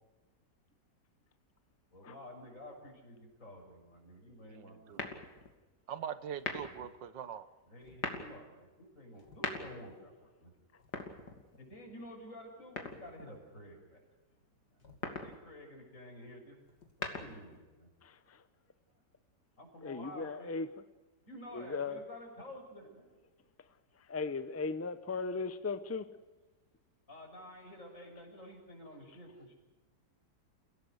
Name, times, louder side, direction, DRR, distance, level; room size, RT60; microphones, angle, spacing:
voice 1, 1.9-5.0 7.7-10.5 11.6-14.0 15.1-16.6 17.2-17.9 19.6-20.5 21.3-23.1 27.1-29.5, left 1 dB, 45° left, 0 dB, 7.2 m, -50 dB
voice 2, 4.5-5.0 5.9-7.5, right 8 dB, 85° right, 13 dB, 1.8 m, -42 dB
sound 1, 4.9-5.6 6.3-6.9 7.8-8.3 9.2-10.0 10.8-11.7 12.8-13.4 14.8-15.4 16.7-17.6, left 3 dB, 65° left, 3.1 m, -41 dB
voice 3, 19.8-20.8 21.5-22.0 24.0-26.1, left 4 dB, 15° left, 11 dB, 0.6 m, -37 dB
30.0 x 17.0 x 6.6 m, 1.2 s
omnidirectional pair, 1.9 m